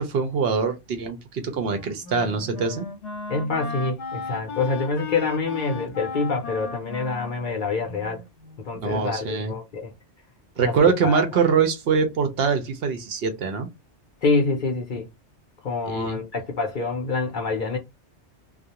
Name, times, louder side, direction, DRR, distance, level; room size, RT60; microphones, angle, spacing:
voice 1, 0.0-2.9 8.7-9.5 10.6-13.7 15.9-16.2, right 5 dB, 65° right, 0.8 m, -23 dB
Wind instrument woodwind instrument, 1.5-8.7, left 4 dB, 80° left, 1.0 m, -36 dB
voice 2, 3.3-8.2 8.6-9.9 10.6-10.7 11.0-11.2 14.2-15.1 15.6-17.8, left 3 dB, 50° left, 0.7 m, -26 dB
2.3 x 2.1 x 2.8 m
omnidirectional pair, 1.2 m